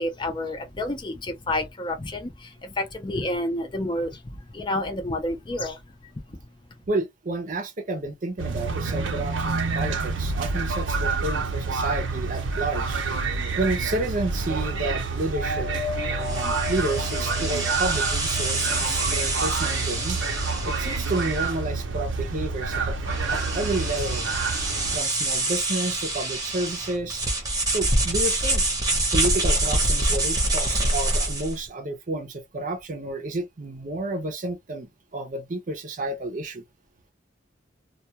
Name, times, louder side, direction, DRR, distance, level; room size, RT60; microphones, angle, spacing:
voice 1, 0.0-5.8 6.3-6.4, left 1 dB, 25° left, 0.5 m, -29 dB
voice 2, 6.9-13.0 13.6-15.7 16.1-20.2 20.6-23.0 23.3-24.3 24.9-27.3 27.7-28.6 29.1-36.6, right 2 dB, 45° right, 0.6 m, -30 dB
sound 1, 8.4-25.0, right 4 dB, 90° right, 0.6 m, -28 dB
sound 2, 15.2-22.6 23.0-26.8 27.2-27.4 30.8-30.9, left 7 dB, 65° left, 0.9 m, -41 dB
sound 3, 16.2-31.6, right 2 dB, 20° right, 0.8 m, -26 dB
2.3 x 2.2 x 2.8 m
head